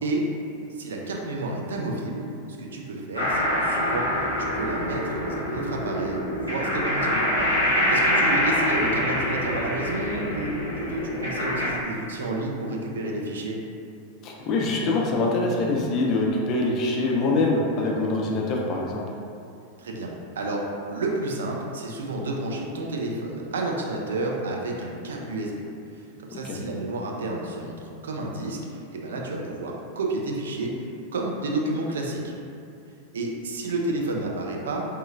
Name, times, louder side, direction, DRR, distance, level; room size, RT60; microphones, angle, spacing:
voice 1, 0.7-2.3 2.6-4.1 4.4-7.2 7.9-13.6 19.8-25.6 25.9-30.8 31.1-32.3 33.1-34.9, right 2 dB, 65° right, -1 dB, 0.3 m, -30 dB
sound 1, 3.1-11.7, equal, 90° right, 0.9 m, -25 dB
voice 2, 14.2-19.0 26.3-26.6, left 2 dB, 35° left, -1 dB, 0.4 m, -24 dB
3.1 x 2.1 x 2.2 m, 2.5 s
figure-of-eight pair, 90°, 0 cm